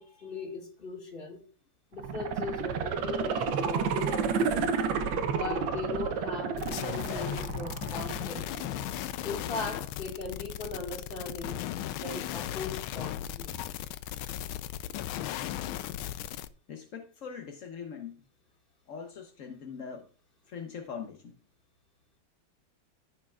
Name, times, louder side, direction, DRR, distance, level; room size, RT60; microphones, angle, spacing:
voice 1, 0.0-1.4 1.9-4.8 5.4-8.5 9.2-11.7 12.0-13.6, left 3 dB, 25° left, 2.0 m, -39 dB
sound 1, 1.9-8.9 9.3-9.4, right 6 dB, 70° right, 1.5 m, -31 dB
voice 2, 4.9-5.2 16.7-18.2 18.9-20.1 20.5-21.4, left 6 dB, 55° left, 0.9 m, -42 dB
sound 2, 6.6-16.5, left 12 dB, 75° left, 1.3 m, -36 dB
15.0 x 6.6 x 2.4 m
omnidirectional pair, 2.4 m